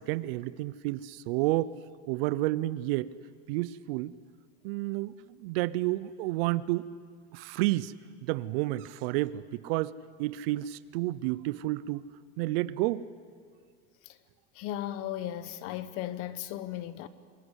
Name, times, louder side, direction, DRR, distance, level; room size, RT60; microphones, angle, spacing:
voice 1, 0.0-1.8 2.1-3.1 3.5-4.2 4.6-6.9 7.3-7.9 8.2-12.0 12.4-13.0, right 17 dB, 60° right, 0.8 m, -30 dB
voice 2, 14.5-17.1, left 12 dB, 40° left, 1.1 m, -36 dB
28.0 x 21.0 x 8.2 m
supercardioid pair, 165°, 34 cm